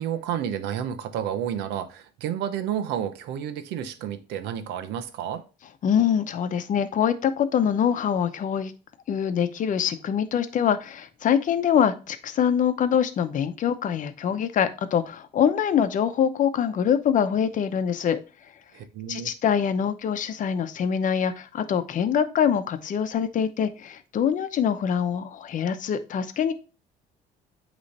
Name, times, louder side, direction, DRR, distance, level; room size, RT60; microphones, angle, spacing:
voice 1, 0.0-5.4 18.7-19.3, right 9 dB, 90° right, 0.8 m, -31 dB
voice 2, 5.8-8.7 9.1-18.2 19.1-26.5, left 8 dB, 50° left, 0.8 m, -24 dB
8.4 x 3.2 x 4.1 m
cardioid pair, 110°, 17 cm